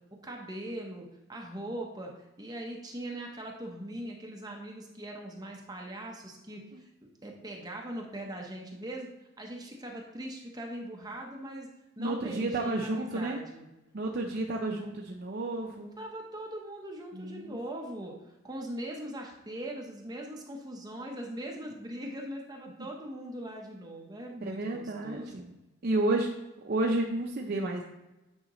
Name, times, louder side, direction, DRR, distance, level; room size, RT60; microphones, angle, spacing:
voice 1, 0.2-6.9 7.2-9.1 9.4-11.7 12.0-13.7 16.0-18.1 18.4-25.3, right 1 dB, 20° right, 0 dB, 0.8 m, -40 dB
voice 2, 12.0-13.4 13.9-15.9 17.1-17.6 24.4-25.5 25.8-26.3 26.6-27.8, right 2 dB, 50° right, 1 dB, 0.6 m, -31 dB
8.7 x 5.0 x 3.0 m, 1.0 s
head